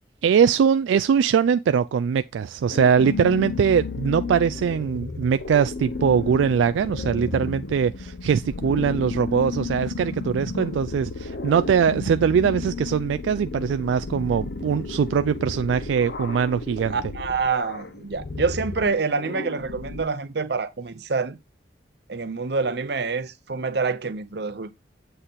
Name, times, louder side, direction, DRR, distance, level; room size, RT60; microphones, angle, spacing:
voice 1, 0.2-17.0, right 7 dB, 85° right, 0.3 m, -22 dB
sound 1, 2.7-20.0, left 3 dB, 60° left, 0.7 m, -33 dB
voice 2, 16.9-21.4 22.1-24.7, right 4 dB, 60° right, 0.7 m, -27 dB
7.9 x 3.9 x 3.9 m
head